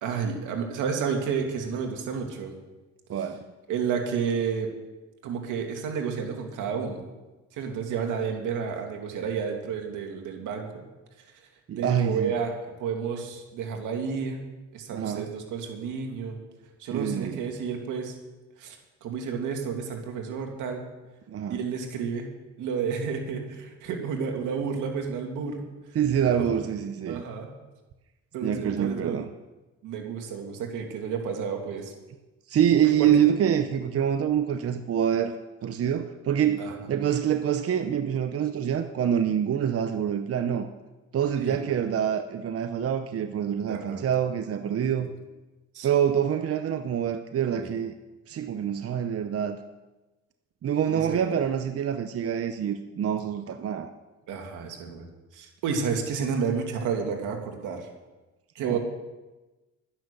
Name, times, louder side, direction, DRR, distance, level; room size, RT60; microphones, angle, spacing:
voice 1, 0.0-2.5 3.7-4.7 5.2-7.0 7.5-10.8 11.7-14.4 14.7-16.4 16.8-18.1 18.6-20.8 21.5-22.3 22.6-25.6 26.4-26.5 27.1-27.5 28.3-29.2 29.8-31.9 33.0-33.1 36.6-36.7 41.4-41.6 43.7-44.0 44.8-45.0 45.7-45.9 47.5-47.7 50.9-51.2 54.3-55.1 55.3-57.9 58.6-58.8, right 6 dB, 90° right, 3 dB, 2.3 m, -31 dB
voice 2, 3.1-3.4 11.7-12.3 14.9-15.3 16.9-17.4 21.3-21.6 25.9-27.2 28.4-29.3 32.5-35.3 35.6-40.7 41.1-45.1 45.8-47.9 48.3-49.6 50.6-53.9 58.7-58.8, right 9 dB, 50° right, 8 dB, 0.8 m, -26 dB
12.0 x 10.0 x 6.7 m, 1.1 s
cardioid pair, 90°, 30 cm